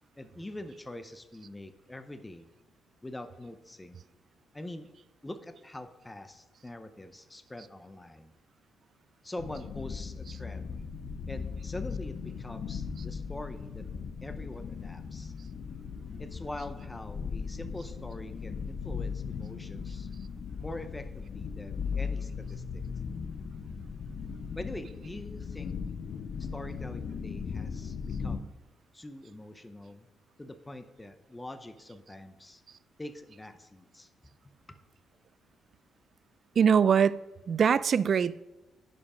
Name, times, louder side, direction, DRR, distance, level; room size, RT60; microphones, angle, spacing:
voice 1, 0.2-2.5 3.0-4.0 4.5-4.9 5.2-8.3 9.2-10.8 11.3-13.9 14.2-15.3 16.2-20.1 20.6-22.8 24.5-25.7 26.4-28.6 28.9-30.1 30.4-32.6 33.0-34.1 34.7-34.8, left 1 dB, 15° left, 0.7 m, -44 dB
sound 1, 9.4-28.4, left 6 dB, 60° left, 0.7 m, -38 dB
voice 2, 36.6-38.4, right 7 dB, 50° right, 0.3 m, -23 dB
10.0 x 5.3 x 5.0 m
cardioid pair, 90°, 0 cm